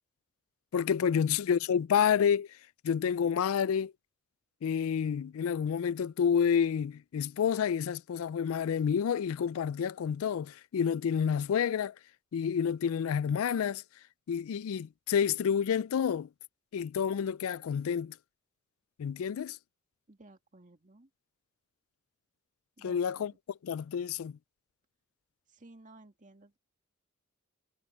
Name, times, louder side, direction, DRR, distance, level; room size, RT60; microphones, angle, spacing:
voice 1, 0.7-2.6 2.8-3.9 4.6-11.9 12.3-13.8 14.3-16.3 16.7-18.1 19.0-19.6 22.8-23.3 23.6-24.4, left 7 dB, 75° left, 0.3 m, -29 dB
voice 2, 20.1-21.1 22.8-23.4 25.5-26.6, right 2 dB, 35° right, 2.0 m, -56 dB
head